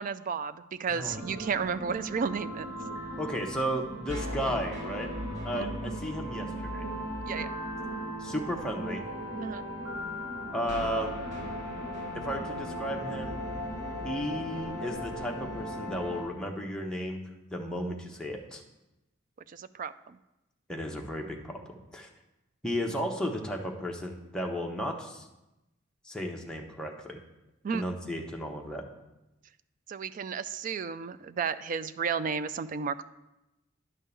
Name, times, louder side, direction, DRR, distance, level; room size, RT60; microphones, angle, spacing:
voice 1, 0.0-2.7 5.5-5.8 7.3-7.5 9.4-9.6 19.5-20.2 27.6-27.8 29.9-33.0, right 6 dB, 40° right, 14 dB, 0.3 m, -33 dB
voice 2, 0.9-1.3 3.2-5.1 5.4-6.8 8.2-9.0 10.5-11.2 12.1-13.4 14.0-17.2 17.5-18.6 20.7-21.6 21.9-22.1 22.6-25.3 26.0-27.2 27.7-28.9, equal, 5° left, 0 dB, 0.9 m, -34 dB
sound 1, 1.0-16.2, equal, 70° right, 3.6 m, -37 dB
10.5 x 3.7 x 6.8 m, 0.96 s
head